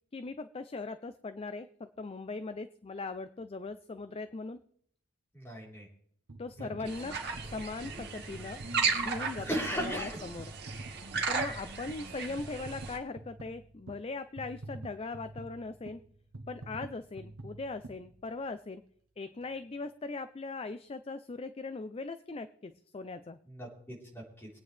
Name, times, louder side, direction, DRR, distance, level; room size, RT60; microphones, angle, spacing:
voice 1, 0.1-4.6 6.4-7.2 7.5-10.5 11.3-16.0 16.5-18.8 19.2-23.4, left 3 dB, 25° left, 11 dB, 0.4 m, -40 dB
voice 2, 5.3-5.9 6.6-6.7 9.4-10.2 23.5-24.5, equal, 10° left, -3 dB, 3.8 m, -37 dB
sound 1, 6.3-18.7 19.3-19.4, right 2 dB, 80° right, 1.1 m, -48 dB
sound 2, 6.9-13.0, right 5 dB, 50° right, 2.1 m, -35 dB
23.0 x 9.1 x 3.3 m, 0.64 s
head